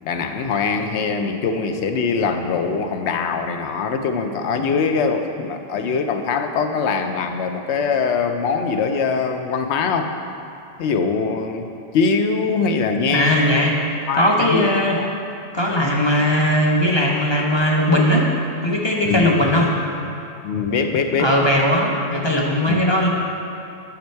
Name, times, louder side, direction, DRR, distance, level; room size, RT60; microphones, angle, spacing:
voice 1, 0.0-10.2 10.8-11.7 11.9-13.7 14.1-15.1 19.0-19.5 20.4-21.4 22.7-22.8, left 5 dB, 90° left, 6 dB, 0.9 m, -22 dB
voice 2, 13.1-13.8 14.2-15.0 15.5-18.3 18.6-19.7 21.2-23.1, equal, 30° left, -2 dB, 0.6 m, -18 dB
7.5 x 5.9 x 4.5 m, 2.6 s
omnidirectional pair, 1.1 m